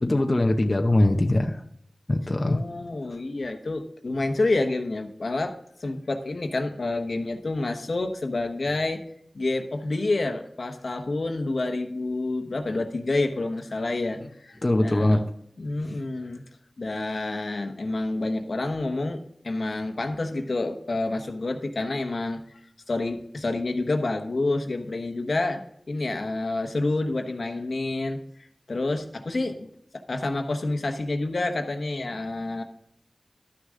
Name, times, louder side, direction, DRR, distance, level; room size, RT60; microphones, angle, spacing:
voice 1, 0.0-1.6 2.1-2.6 14.6-15.2, left 1 dB, 35° left, 3 dB, 0.8 m, -21 dB
voice 2, 2.5-9.0 9.3-15.2 15.6-16.4 16.8-22.4 22.9-25.6 25.9-28.2 28.7-32.6, left 2 dB, 70° left, 5 dB, 1.1 m, -28 dB
12.5 x 6.4 x 3.7 m, 0.70 s
wide cardioid pair, 75°, 0 cm